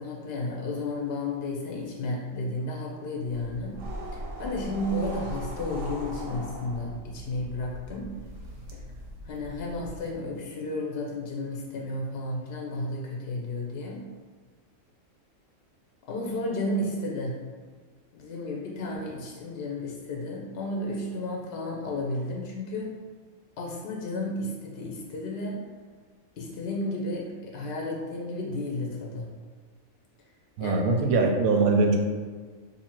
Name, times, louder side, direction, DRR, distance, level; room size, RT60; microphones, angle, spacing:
voice 1, 0.0-3.8 4.1-8.1 9.2-14.1 16.1-17.4 18.1-22.9 23.6-25.6 26.4-29.3 30.6-30.8, left 2 dB, 60° left, -2 dB, 0.6 m, -32 dB
sound 1, 3.2-10.1, equal, 60° right, 0.7 m, -39 dB
voice 2, 30.6-32.0, right 3 dB, 90° right, 3 dB, 1.0 m, -22 dB
2.7 x 2.7 x 4.3 m, 1.5 s
omnidirectional pair, 1.4 m